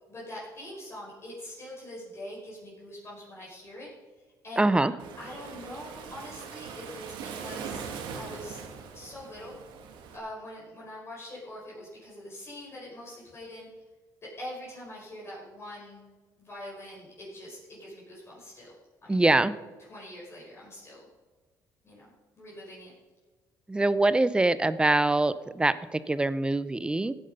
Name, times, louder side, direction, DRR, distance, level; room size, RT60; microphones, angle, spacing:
voice 1, 0.1-3.9 4.4-4.7 5.2-7.8 8.1-8.6 8.9-9.6 10.1-13.7 14.2-16.0 16.4-18.7 19.0-19.3 19.9-21.1 21.8-22.0 22.3-22.9, left 1 dB, 35° left, -6 dB, 5.1 m, -43 dB
voice 2, 4.6-4.9 19.1-19.5 23.7-27.1, right 2 dB, 10° right, 15 dB, 0.6 m, -24 dB
Waves surf, 5.0-10.2, right 6 dB, 85° right, 1.9 m, -41 dB
15.5 x 9.0 x 5.5 m, 1.4 s
cardioid pair, 105°, 8 cm